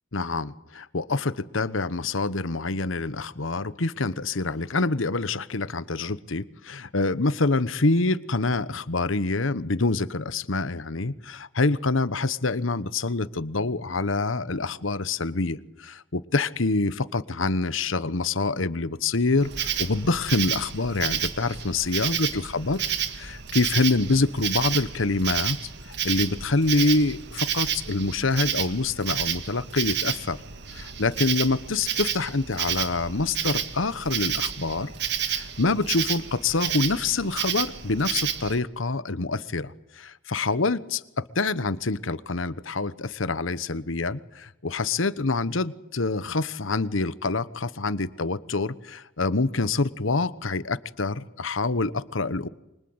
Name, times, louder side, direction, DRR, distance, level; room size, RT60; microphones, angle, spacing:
voice 1, 0.1-22.8 23.1-25.6 25.8-30.4 30.7-34.9 35.2-52.5, left 3 dB, 75° left, 16 dB, 1.2 m, -26 dB
Insect, 19.4-38.6, right 9 dB, 60° right, 1.9 m, -30 dB
28.5 x 25.0 x 8.0 m, 0.93 s
head